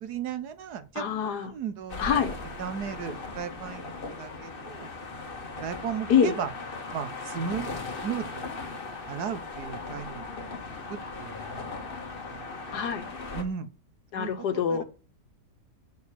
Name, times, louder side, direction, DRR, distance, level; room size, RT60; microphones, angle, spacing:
voice 1, 0.0-4.9 5.6-6.5 6.9-7.7 8.0-8.4 9.1-10.5 10.9-12.0 12.3-12.5 13.3-13.7 14.1-14.3 14.7-14.8, right 7 dB, 75° right, 1.4 m, -36 dB
voice 2, 1.0-1.5 2.0-2.3 6.1-6.4 12.7-13.1 14.1-14.8, left 7 dB, 75° left, 1.7 m, -25 dB
sound 1, 1.9-13.4, left 3 dB, 35° left, 1.5 m, -38 dB
6.5 x 5.1 x 6.8 m
omnidirectional pair, 1.8 m